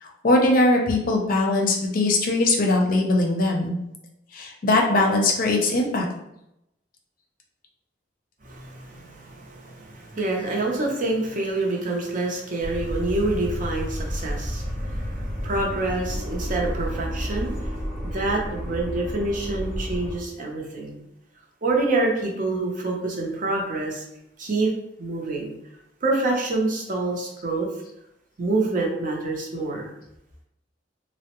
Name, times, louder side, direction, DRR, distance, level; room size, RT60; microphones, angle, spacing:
voice 1, 0.0-3.8 4.3-6.1, left 2 dB, 50° left, 0 dB, 0.5 m, -21 dB
voice 2, 8.4-17.8 18.0-21.0 21.6-24.0 24.4-24.7 25.0-25.5 26.0-27.7 28.4-29.9, right 2 dB, 45° right, -1 dB, 0.7 m, -27 dB
sound 1, 12.6-20.2, equal, ahead, 0.8 m, -31 dB
3.3 x 2.1 x 2.9 m, 0.84 s
head